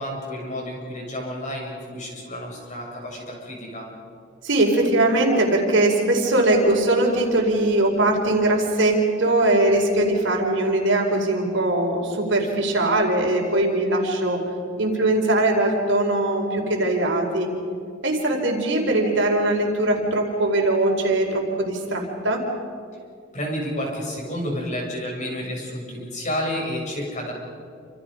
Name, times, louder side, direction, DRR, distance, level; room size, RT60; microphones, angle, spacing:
voice 1, 0.0-3.9 23.3-27.3, equal, 40° left, -1 dB, 7.5 m, -30 dB
voice 2, 4.4-14.4 14.8-17.5 18.0-22.4, right 1 dB, 65° right, 1 dB, 4.6 m, -21 dB
28.5 x 28.0 x 5.3 m, 2.4 s
head